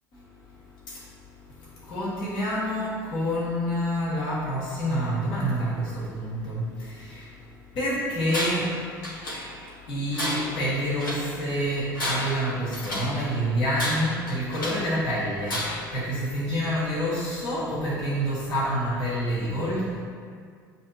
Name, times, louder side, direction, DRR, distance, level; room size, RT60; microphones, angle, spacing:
voice 1, 1.9-6.7 7.0-7.2 7.8-8.7 9.9-15.6 15.9-20.0, equal, 50° left, -6 dB, 1.2 m, -27 dB
Tools, 8.3-8.7 9.0-9.7 10.1-11.3 11.8-13.2 13.7-14.9 15.4-16.0, left 1 dB, 85° left, 0.9 m, -32 dB
7.4 x 2.7 x 2.3 m, 2.1 s
hypercardioid pair, 70°, 11 cm